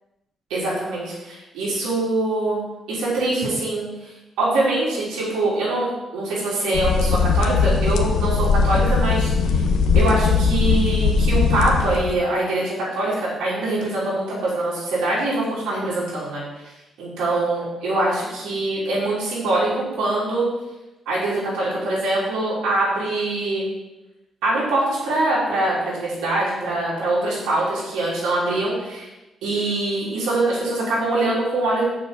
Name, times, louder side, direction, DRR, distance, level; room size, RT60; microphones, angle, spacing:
voice 1, 0.5-2.6 2.9-9.6 9.9-16.7 17.0-20.5 21.1-23.6 24.4-29.1 29.4-31.8, right 2 dB, 90° right, -7 dB, 3.7 m, -23 dB
sound 1, 6.7-12.1, left 5 dB, 85° left, 0.9 m, -19 dB
7.0 x 5.7 x 7.1 m, 1.0 s
cardioid pair, 75°, 0 cm